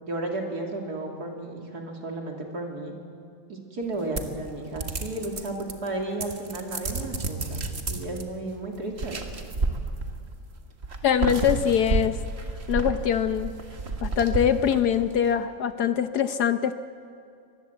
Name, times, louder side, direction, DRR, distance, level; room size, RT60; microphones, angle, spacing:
voice 1, 0.0-2.9 3.5-9.2, right 2 dB, 55° right, 2 dB, 3.3 m, -33 dB
sound 1, 4.2-5.9 6.2-8.2 8.9-10.3 10.8-15.1, right 3 dB, 35° right, 1.8 m, -31 dB
voice 2, 11.0-12.2 12.7-13.5 14.0-16.7, left 8 dB, 65° left, 10 dB, 1.2 m, -23 dB
25.0 x 20.0 x 8.0 m, 2.5 s
omnidirectional pair, 2.0 m